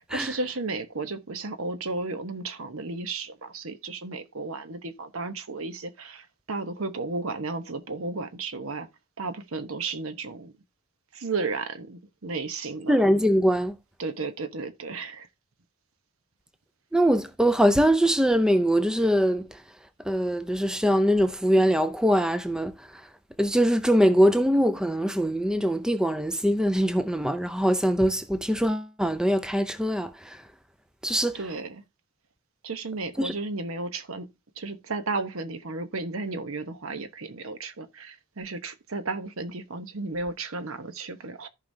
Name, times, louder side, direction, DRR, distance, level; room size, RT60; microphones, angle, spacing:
voice 1, 0.1-8.9 9.2-10.5 11.1-13.1 14.0-15.3 31.3-31.8 32.6-34.3 34.6-41.5, right 3 dB, 75° right, 1.0 m, -33 dB
voice 2, 12.9-13.8 16.9-19.6 20.1-23.0 23.4-30.4 31.0-31.4 33.2-33.3, equal, 5° right, 0.4 m, -23 dB
14.5 x 5.0 x 2.7 m
head